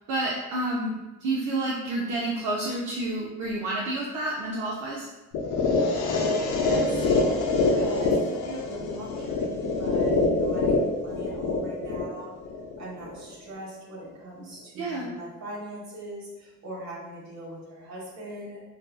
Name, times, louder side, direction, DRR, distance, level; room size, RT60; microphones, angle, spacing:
voice 1, 0.1-0.9 1.2-5.1 7.7-7.9 14.8-15.1, right 2 dB, 85° right, -4 dB, 0.5 m, -29 dB
sound 1, 5.3-13.3, left 3 dB, 85° left, 0.5 m, -25 dB
voice 2, 6.4-12.3 12.8-18.6, right 1 dB, 65° right, -4 dB, 1.1 m, -41 dB
2.6 x 2.3 x 2.3 m, 1.1 s
cardioid pair, 90°, 30 cm